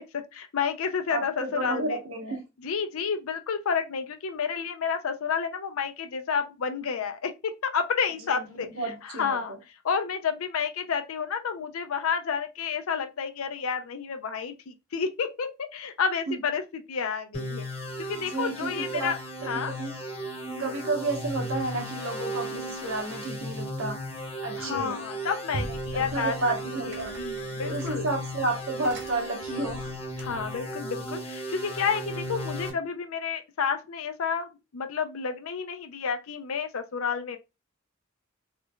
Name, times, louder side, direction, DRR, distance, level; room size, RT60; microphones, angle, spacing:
voice 1, 0.0-2.0 2.6-8.7 9.0-9.6 9.8-16.6 16.9-17.6 18.0-19.2 19.5-19.7 20.5-20.7 24.6-26.6 26.8-28.1 30.2-37.4, left 6 dB, 75° left, 0.5 m, -30 dB
voice 2, 1.1-2.4 8.2-8.5 8.7-9.6 16.3-16.4 18.3-19.1 19.4-19.5 19.8-20.0 20.6-24.0 24.4-25.0 25.9-27.1 27.6-29.9, right 2 dB, 75° right, 1.0 m, -31 dB
sound 1, 17.3-32.7, equal, 30° left, 1.1 m, -36 dB
sound 2, 24.5-25.1 25.5-30.6, right 2 dB, 55° right, 0.6 m, -42 dB
3.2 x 3.1 x 2.3 m
head